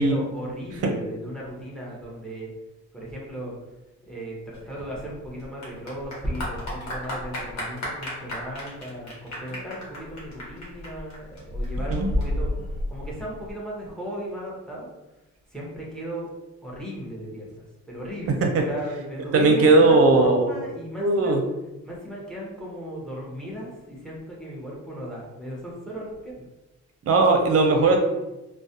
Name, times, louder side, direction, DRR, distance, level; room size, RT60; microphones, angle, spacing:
voice 1, 0.0-2.5 2.9-3.5 4.0-12.5 12.9-14.9 15.5-16.3 16.6-21.3 21.8-26.5, equal, ahead, -4 dB, 0.8 m, -35 dB
Clapping / Applause, 4.5-13.5, left 1 dB, 65° left, 1.1 m, -32 dB
voice 2, 18.3-18.6 19.3-20.5 21.0-21.4 27.1-28.0, right 3 dB, 50° right, 3 dB, 0.6 m, -18 dB
2.3 x 2.1 x 2.7 m, 1.0 s
cardioid pair, 90°, 30 cm